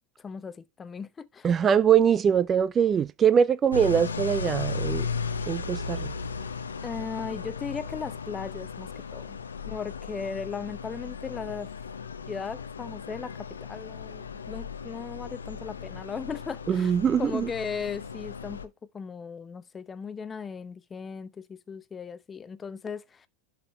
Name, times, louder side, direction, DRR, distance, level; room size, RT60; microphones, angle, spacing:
voice 1, 0.2-1.5 6.8-9.4 9.6-11.7 12.3-16.9 17.2-23.3, left 5 dB, 20° left, 0.8 m, -37 dB
voice 2, 1.4-5.1 5.5-6.1 16.7-17.5, right 8 dB, 30° right, 0.4 m, -22 dB
sound 1, 3.7-18.7, left 4 dB, 90° left, 0.7 m, -36 dB
11.0 x 4.2 x 3.1 m
hypercardioid pair, 95°, 0 cm